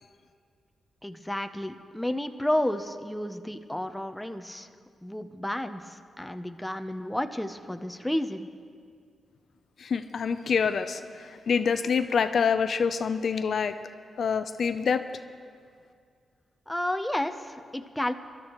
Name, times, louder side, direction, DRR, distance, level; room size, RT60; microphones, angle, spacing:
voice 1, 1.0-4.7 5.0-8.5 16.7-18.1, left 1 dB, 5° left, 7 dB, 0.6 m, -31 dB
voice 2, 9.8-13.7 14.2-15.0, left 6 dB, 60° left, 10 dB, 0.5 m, -26 dB
24.0 x 12.5 x 3.0 m, 2.2 s
wide cardioid pair, 115°, 0 cm